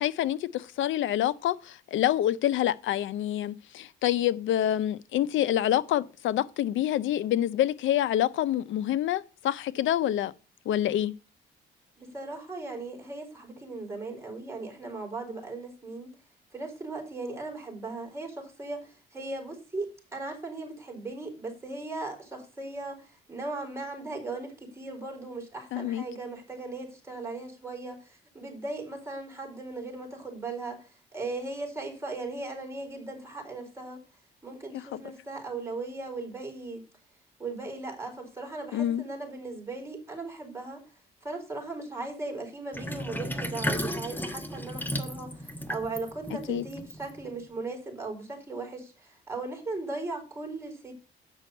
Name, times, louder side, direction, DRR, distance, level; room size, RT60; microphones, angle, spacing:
voice 1, 0.0-10.3 10.7-11.1 25.7-26.0 34.9-35.0 38.7-39.0 46.5-46.6, left 12 dB, 75° left, 0.6 m, -27 dB
voice 2, 12.0-16.1 16.5-34.0 34.4-36.8 37.4-40.8 41.2-50.9, right 3 dB, 15° right, 4.4 m, -38 dB
Sink (filling or washing), 42.7-47.5, equal, 10° left, 1.2 m, -34 dB
8.3 x 6.1 x 6.5 m
cardioid pair, 90°, 20 cm